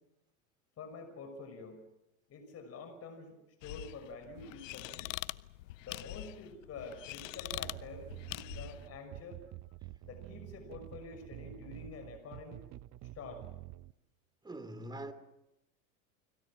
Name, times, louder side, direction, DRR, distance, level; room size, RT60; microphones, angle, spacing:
voice 1, 0.8-1.8 2.3-5.1 5.8-9.4 10.0-12.6 13.1-13.5, left 4 dB, 35° left, 6.1 m, -47 dB
sound 1, 3.6-8.9, left 18 dB, 70° left, 0.9 m, -44 dB
sound 2, 7.5-13.9, right 15 dB, 40° right, 1.0 m, -49 dB
voice 2, 14.4-15.1, right 1 dB, 10° right, 3.1 m, -43 dB
30.0 x 21.5 x 7.5 m
hypercardioid pair, 95°, 41 cm